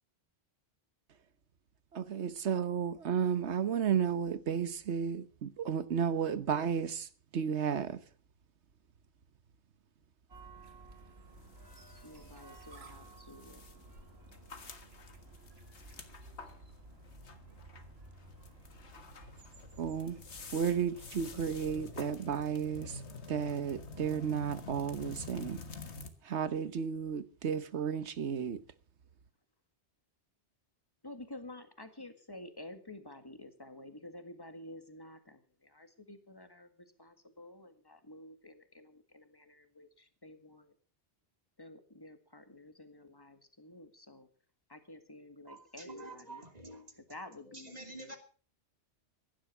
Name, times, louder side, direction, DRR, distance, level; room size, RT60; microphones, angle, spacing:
voice 1, 1.9-7.1 7.3-8.0 19.8-20.2 20.5-23.0 23.3-25.6 26.2-28.6, right 7 dB, 80° right, 1.3 m, -33 dB
sound 1, 10.3-21.8, right 3 dB, 65° right, 2.0 m, -54 dB
sound 2, 11.3-26.1, left 3 dB, 80° left, 1.9 m, -49 dB
voice 2, 12.0-13.6 31.0-40.7 41.6-44.3 44.7-46.4 47.1-48.2, left 1 dB, 20° left, 1.9 m, -51 dB
voice 3, 45.5-47.0 47.5-48.2, right 2 dB, 35° right, 3.2 m, -48 dB
16.0 x 11.5 x 6.0 m
omnidirectional pair, 1.1 m